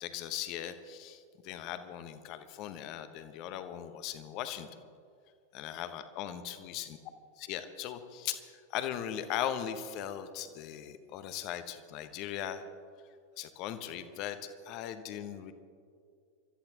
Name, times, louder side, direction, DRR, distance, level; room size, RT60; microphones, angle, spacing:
voice 1, 0.0-4.8 5.5-7.0 7.4-12.7 13.4-14.4 14.6-15.5, left 10 dB, 40° left, 10 dB, 1.1 m, -39 dB
27.0 x 14.0 x 3.0 m, 2.3 s
figure-of-eight pair, 90°, 0 cm